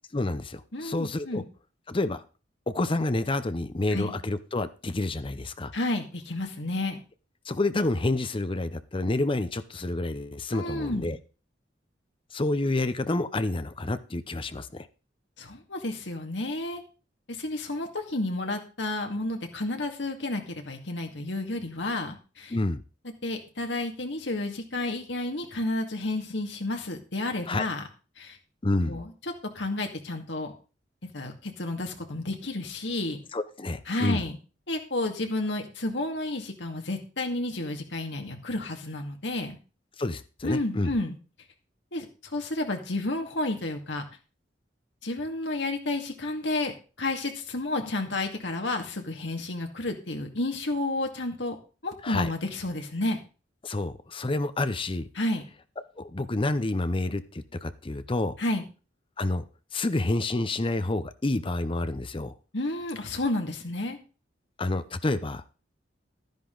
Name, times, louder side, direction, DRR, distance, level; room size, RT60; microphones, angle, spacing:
voice 1, 0.1-1.4 1.9-2.2 2.7-5.7 7.5-11.2 12.3-14.9 22.5-22.8 27.5-27.7 28.6-29.0 33.3-34.2 40.0-40.9 52.0-52.3 53.6-55.1 56.0-58.4 59.2-59.4 59.7-62.3 64.6-65.4, left 2 dB, 30° left, 12 dB, 0.7 m, -29 dB
voice 2, 0.7-1.5 3.9-4.1 5.7-7.0 10.5-11.1 15.4-16.8 17.3-22.6 23.2-27.8 28.2-28.4 28.8-29.1 29.5-30.5 31.1-33.2 33.9-34.4 34.7-39.6 40.4-41.2 41.9-44.0 45.0-46.7 47.0-51.6 51.8-53.2 55.2-55.5 58.4-58.6 62.5-64.0, left 2 dB, 70° left, 4 dB, 2.2 m, -31 dB
12.0 x 10.5 x 3.9 m, 0.34 s
head